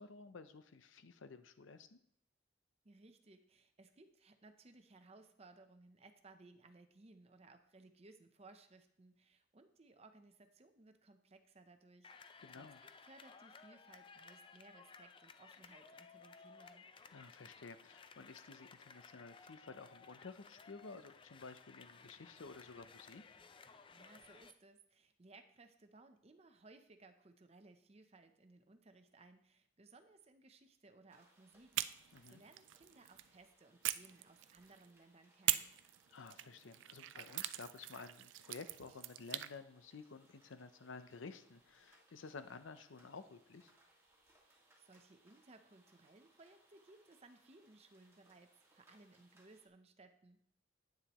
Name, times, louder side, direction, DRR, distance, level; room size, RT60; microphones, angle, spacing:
voice 1, 0.0-2.0 12.4-12.8 17.1-23.2 32.1-32.4 36.1-43.7, left 4 dB, 85° left, 11 dB, 0.7 m, -53 dB
voice 2, 2.8-16.9 23.9-35.8 44.4-50.5, right 3 dB, 30° right, 8 dB, 0.7 m, -62 dB
sound 1, 12.0-24.5, left 5 dB, 25° left, 0.4 m, -59 dB
sound 2, 31.1-49.7, right 1 dB, 15° right, 1.8 m, -72 dB
sound 3, 31.7-33.3 33.8-34.9 35.5-39.5, right 15 dB, 70° right, 0.3 m, -42 dB
9.9 x 9.0 x 3.0 m, 0.70 s
head